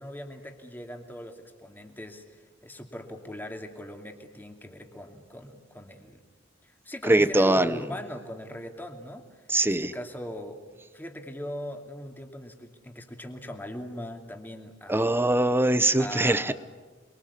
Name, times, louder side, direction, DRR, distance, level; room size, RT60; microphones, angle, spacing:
voice 1, 0.0-6.2 6.6-9.2 9.6-10.6 10.9-15.2 16.0-16.5, equal, 10° left, 4 dB, 2.7 m, -40 dB
voice 2, 7.1-7.7 9.5-9.9 14.9-16.5, right 1 dB, 10° right, 14 dB, 0.8 m, -22 dB
29.0 x 22.5 x 8.5 m, 1.4 s
head